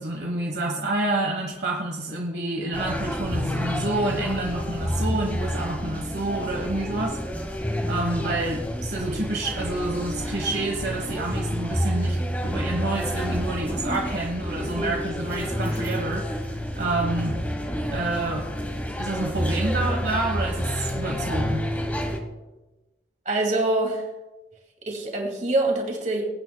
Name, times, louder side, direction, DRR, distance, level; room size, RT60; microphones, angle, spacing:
voice 1, 0.0-7.5 7.9-17.4 17.9-18.7 19.0-21.7, right 2 dB, 60° right, 0 dB, 1.3 m, -28 dB
sound 1, 2.7-22.2, equal, 10° left, 1.2 m, -29 dB
voice 2, 23.3-24.0 24.9-26.2, right 2 dB, 40° right, 1 dB, 2.5 m, -25 dB
21.5 x 9.4 x 2.3 m, 1.1 s
head